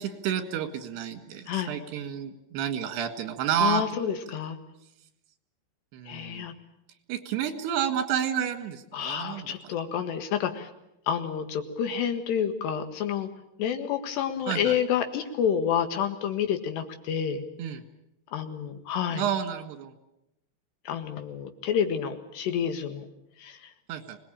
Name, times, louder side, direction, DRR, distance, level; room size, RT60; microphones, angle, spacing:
voice 1, 0.0-4.4 5.9-6.5 7.1-9.7 14.5-14.8 17.6-17.8 19.1-19.9 23.9-24.2, right 9 dB, 80° right, 8 dB, 3.9 m, -30 dB
voice 2, 3.6-4.6 6.1-6.5 8.9-10.7 11.1-13.3 13.6-17.4 18.3-19.2 20.9-23.1 23.4-23.7, left 8 dB, 80° left, 7 dB, 3.9 m, -29 dB
25.0 x 19.5 x 8.8 m, 0.86 s
omnidirectional pair, 4.8 m